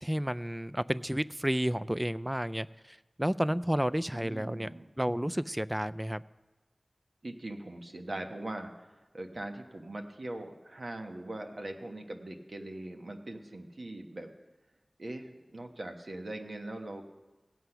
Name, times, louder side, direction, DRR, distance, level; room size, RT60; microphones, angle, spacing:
voice 1, 0.0-4.7 5.0-6.2, equal, 10° right, 15 dB, 0.3 m, -31 dB
voice 2, 4.1-4.9 7.2-14.3 15.0-17.0, right 1 dB, 65° right, 4 dB, 1.1 m, -41 dB
17.0 x 8.0 x 5.7 m, 1.2 s
wide cardioid pair, 60°, 0 cm